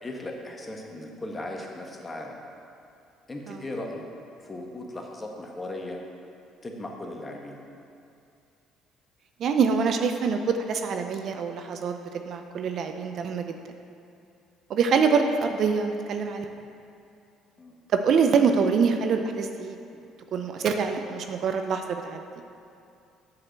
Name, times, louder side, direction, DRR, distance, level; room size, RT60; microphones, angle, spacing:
voice 1, 0.0-2.4 3.3-4.0 4.4-6.0 6.6-7.6 17.6-17.8, left 1 dB, 25° left, 1 dB, 1.4 m, -37 dB
voice 2, 9.4-13.5 14.7-16.5 17.9-19.8 20.3-22.2, right 5 dB, 60° right, 6 dB, 0.6 m, -25 dB
7.6 x 5.0 x 7.3 m, 2.6 s
supercardioid pair, 75°, 0 cm